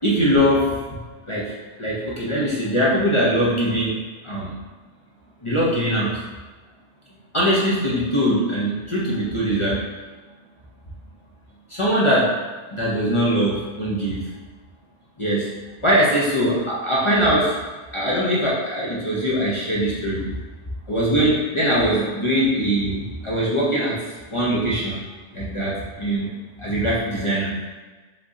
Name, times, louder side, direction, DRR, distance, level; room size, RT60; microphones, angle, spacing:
voice 1, 0.0-1.0 1.3-1.5 1.8-4.0 4.2-4.6 5.4-6.2 7.3-9.8 11.7-12.4 12.7-14.3 15.2-15.5 15.8-17.6 17.9-20.3 20.9-24.0 24.3-25.0 25.3-26.3 26.6-27.7, equal, 30° left, -7 dB, 0.8 m, -21 dB
5.2 x 3.4 x 2.8 m, 1.3 s
omnidirectional pair, 1.2 m